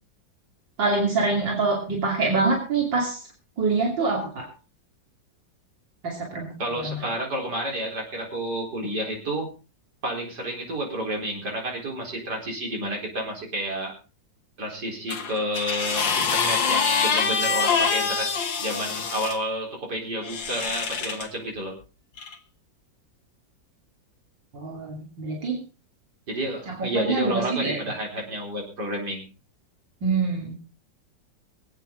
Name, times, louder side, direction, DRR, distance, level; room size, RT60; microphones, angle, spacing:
voice 1, 0.8-3.2 3.6-4.5 6.0-7.0 24.5-25.6 26.7-27.8 30.0-30.5, right 3 dB, 85° right, -1 dB, 3.6 m, -25 dB
voice 2, 6.6-9.5 10.0-13.9 14.6-18.3 18.6-21.8 26.3-29.3, right 1 dB, 65° right, 0 dB, 4.8 m, -30 dB
sound 1, 15.1-19.4 20.2-21.3 22.2-22.3, left 5 dB, 85° left, 2.3 m, -25 dB
23.5 x 8.9 x 3.8 m, 0.32 s
omnidirectional pair, 1.9 m